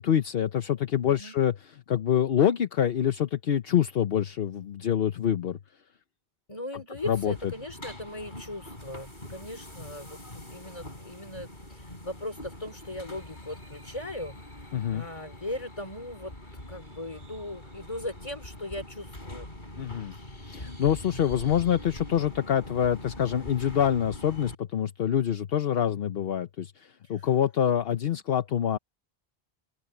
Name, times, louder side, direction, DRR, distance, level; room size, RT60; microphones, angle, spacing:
voice 1, 0.0-1.5 1.9-5.6 7.1-7.3 14.7-15.1 19.8-20.1 20.4-28.8, left 9 dB, 70° left, 1.0 m, -26 dB
voice 2, 6.5-16.4 16.7-19.5 27.0-27.3 28.0-28.2, left 1 dB, 30° left, 3.6 m, -39 dB
sound 1, 7.0-24.6, left 1 dB, 50° left, 5.4 m, -43 dB
open air
omnidirectional pair, 1.0 m